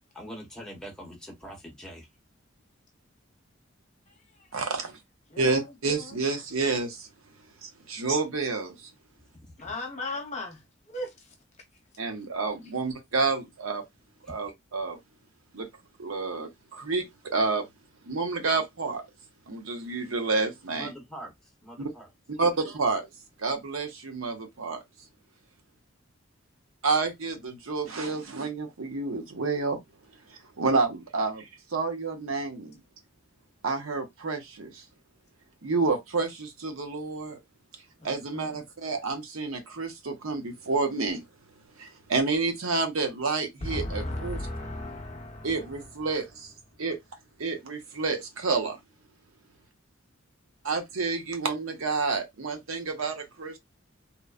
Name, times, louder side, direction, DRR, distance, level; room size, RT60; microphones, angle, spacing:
voice 1, 0.1-2.1 9.3-9.7 14.2-14.3 20.7-21.3 21.6-22.1 22.4-22.5, equal, 5° left, 0.9 m, -43 dB
voice 2, 4.5-5.0 5.4-7.1 7.6-8.9 12.0-13.8 14.3-15.0 15.5-15.7 16.0-17.7 18.1-19.0 19.5-20.9 21.8-21.9 22.4-23.1 23.4-24.8 26.8-29.8 30.6-32.8 33.6-34.8 35.6-37.4 38.0-41.2 41.8-44.4 45.4-46.5 46.8-47.0 47.4-48.8 50.6-53.6, right 4 dB, 85° right, 0.8 m, -29 dB
voice 3, 5.3-6.2 9.6-10.6 10.9-11.1 38.0-38.7 43.6-45.9, left 1 dB, 35° left, 0.9 m, -36 dB
3.0 x 2.1 x 2.3 m
head